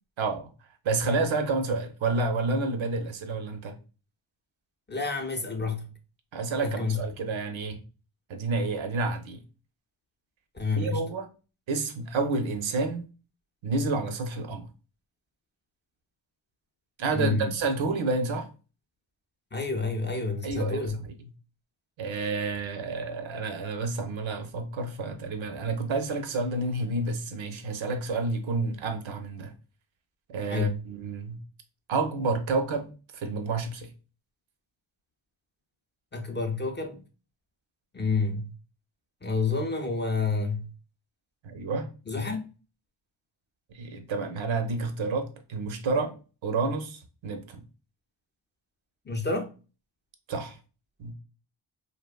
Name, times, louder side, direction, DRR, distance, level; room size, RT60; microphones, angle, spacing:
voice 1, 0.2-0.5 0.8-3.8 6.3-7.8 8.3-9.4 10.7-11.3 11.7-13.1 13.6-14.7 17.0-18.5 20.4-21.3 22.0-29.5 30.3-31.4 31.9-33.9 41.4-41.9 43.7-46.1 46.4-47.7 50.3-50.6 51.0-51.1, right 3 dB, 85° right, 0.6 m, -29 dB
voice 2, 4.9-5.9 6.6-7.0 10.5-11.1 17.1-17.5 19.5-21.0 30.5-30.8 36.1-37.0 37.9-38.5 39.2-40.7 42.1-42.5 49.1-49.5, left 4 dB, 25° left, 0.4 m, -29 dB
2.8 x 2.1 x 2.3 m
wide cardioid pair, 65°, 46 cm